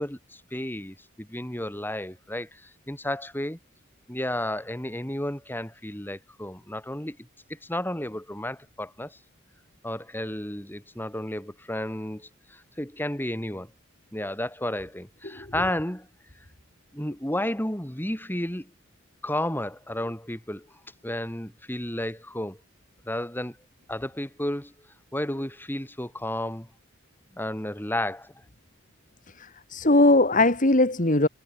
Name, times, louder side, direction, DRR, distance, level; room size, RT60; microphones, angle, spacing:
voice 1, 0.0-3.6 4.1-7.2 7.5-9.2 9.8-13.7 14.1-16.1 16.9-18.7 19.2-20.7 21.0-22.6 23.1-23.6 23.9-24.7 25.1-26.7 27.3-28.3, left 1 dB, 10° left, 4.2 m, -32 dB
voice 2, 29.4-31.3, left 2 dB, 40° left, 2.2 m, -20 dB
head